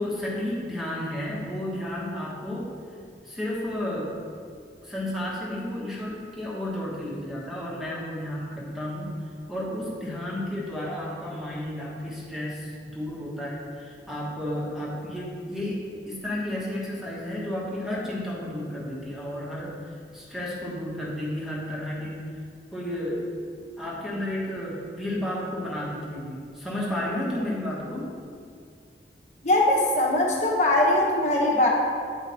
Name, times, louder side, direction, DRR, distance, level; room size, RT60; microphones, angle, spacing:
voice 1, 0.0-2.7 3.2-4.2 4.8-9.2 9.5-19.8 20.1-22.2 22.7-23.3 23.8-28.2, left 1 dB, ahead, -5 dB, 1.3 m, -32 dB
voice 2, 29.4-31.7, left 1 dB, 40° left, -2 dB, 1.2 m, -21 dB
8.6 x 4.9 x 4.3 m, 2.2 s
head